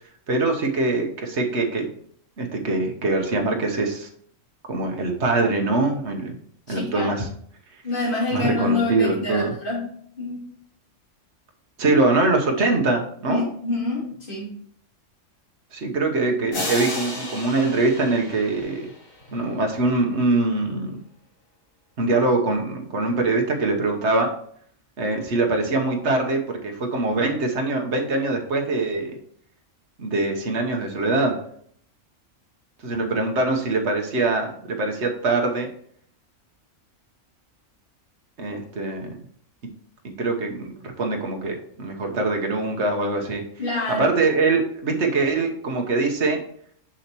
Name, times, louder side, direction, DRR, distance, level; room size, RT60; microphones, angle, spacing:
voice 1, 0.3-1.8 2.4-4.1 4.7-6.4 6.7-7.3 8.3-9.5 11.8-13.5 15.7-18.9 19.3-21.0 22.0-24.3 25.0-29.2 30.0-31.4 32.8-35.7 38.4-39.2 40.0-43.4 43.9-46.4, right 3 dB, 60° right, 2 dB, 1.4 m, -23 dB
voice 2, 6.7-7.1 7.8-10.4 13.3-14.5 43.6-44.1, left 2 dB, 40° left, -7 dB, 2.7 m, -27 dB
sound 1, 16.5-19.4, left 1 dB, 85° left, 2.1 m, -32 dB
7.0 x 5.7 x 3.0 m, 0.63 s
omnidirectional pair, 1.4 m